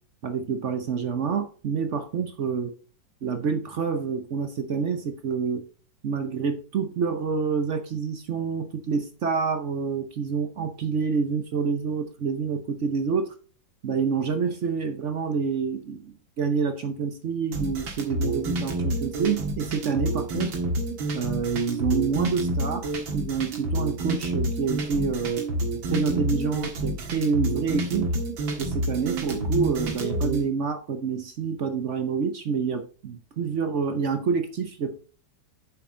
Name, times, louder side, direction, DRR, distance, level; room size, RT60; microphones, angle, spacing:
voice 1, 0.2-2.7 3.2-5.7 6.0-13.3 13.8-20.6 21.1-25.5 25.9-28.1 28.6-34.9, right 5 dB, 60° right, 8 dB, 0.8 m, -27 dB
sound 1, 17.5-30.4, right 1 dB, 90° right, 2.5 m, -28 dB
8.4 x 6.9 x 3.7 m, 0.41 s
omnidirectional pair, 2.1 m